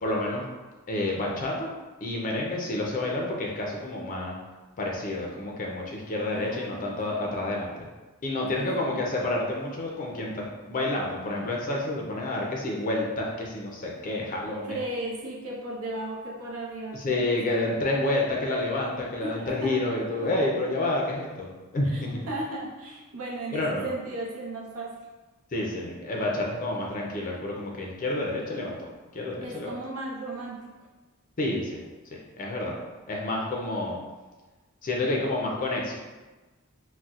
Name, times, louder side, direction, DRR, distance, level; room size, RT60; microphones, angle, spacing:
voice 1, 0.0-0.5 0.9-1.7 2.0-4.4 4.8-7.8 8.2-14.8 16.9-21.5 21.7-22.3 23.5-23.9 25.5-28.9 29.1-29.7 31.4-31.8 32.4-32.8 33.1-34.0 34.8-36.0, left 2 dB, 40° left, -2 dB, 0.4 m, -29 dB
voice 2, 6.1-7.4 8.6-9.0 14.7-17.2 17.5-17.8 19.2-20.5 21.8-24.9 29.4-30.6, right 1 dB, 85° right, -3 dB, 0.7 m, -36 dB
4.0 x 2.1 x 2.4 m, 1.2 s
head